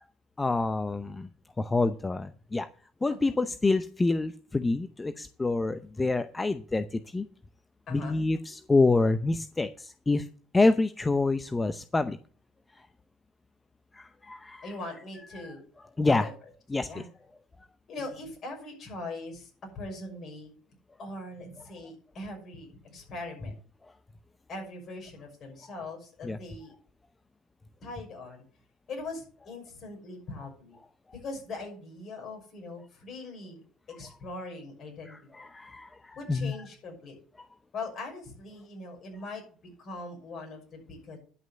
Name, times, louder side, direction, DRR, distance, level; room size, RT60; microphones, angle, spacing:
voice 1, 0.4-1.3 1.6-2.7 3.0-7.3 7.9-10.3 10.5-12.2 13.9-14.7 15.4-15.5 16.0-16.3 16.7-17.1 26.2-26.4 35.1-36.5, left 3 dB, 20° left, 12 dB, 0.7 m, -27 dB
voice 2, 7.9-8.2 14.6-15.6 16.2-16.3 16.9-17.0 17.9-20.5 21.0-23.5 24.5-26.7 27.8-28.4 28.9-30.8 31.1-35.2 36.2-37.2 37.7-39.4 39.8-41.2, left 2 dB, 50° left, 3 dB, 6.0 m, -41 dB
11.0 x 6.2 x 7.5 m, 0.43 s
hypercardioid pair, 65°, 0 cm